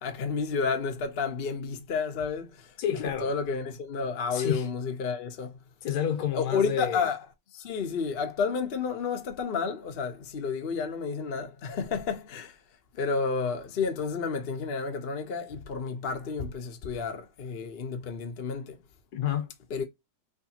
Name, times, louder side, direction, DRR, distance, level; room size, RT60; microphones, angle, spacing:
voice 1, 0.0-2.7 3.2-5.5 6.3-7.2 7.5-12.6 12.9-18.8 19.7-19.8, left 5 dB, 45° left, 0.9 m, -31 dB
voice 2, 2.8-3.3 4.3-4.7 5.8-7.1 19.1-19.5, left 9 dB, 70° left, 1.5 m, -29 dB
3.6 x 3.4 x 2.8 m
omnidirectional pair, 1.8 m